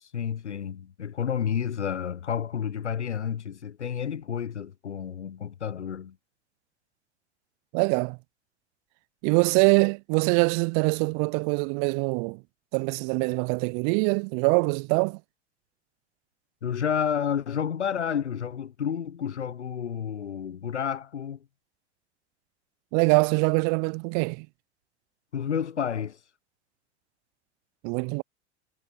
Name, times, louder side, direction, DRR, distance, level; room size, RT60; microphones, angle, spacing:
voice 1, 0.0-6.2 16.6-21.4 25.3-26.2, left 8 dB, 85° left, 0.9 m, -30 dB
voice 2, 7.7-8.2 9.2-12.4 12.7-15.2 22.9-24.5 27.8-28.2, right 40 dB or more, 45° right, 0.5 m, -24 dB
figure-of-eight pair, 85°, 34 cm